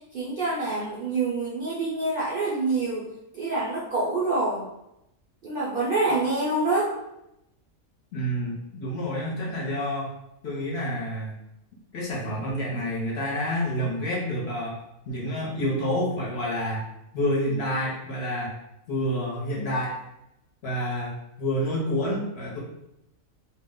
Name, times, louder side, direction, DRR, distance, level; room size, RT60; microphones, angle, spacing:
voice 1, 0.1-3.1 3.3-4.6 5.4-6.9, right 2 dB, 55° right, -7 dB, 0.6 m, -26 dB
voice 2, 8.1-10.1 10.4-11.3 11.9-14.8 15.1-16.8 17.1-18.5 18.9-20.0 20.6-22.6, equal, 55° left, -4 dB, 0.9 m, -28 dB
2.4 x 2.0 x 3.6 m, 0.86 s
omnidirectional pair, 1.4 m